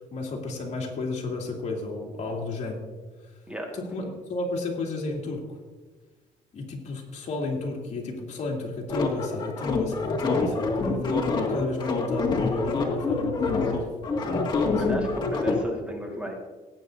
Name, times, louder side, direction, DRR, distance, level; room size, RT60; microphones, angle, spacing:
voice 1, 0.1-2.8 3.7-5.6 6.5-13.8 14.7-15.0, left 3 dB, 50° left, -1 dB, 2.6 m, -33 dB
sound 1, 8.9-15.6, left 3 dB, 30° left, 2.1 m, -26 dB
voice 2, 14.7-16.4, equal, 5° right, 1 dB, 1.8 m, -34 dB
18.5 x 9.1 x 2.7 m, 1.3 s
cardioid pair, 115°, 15 cm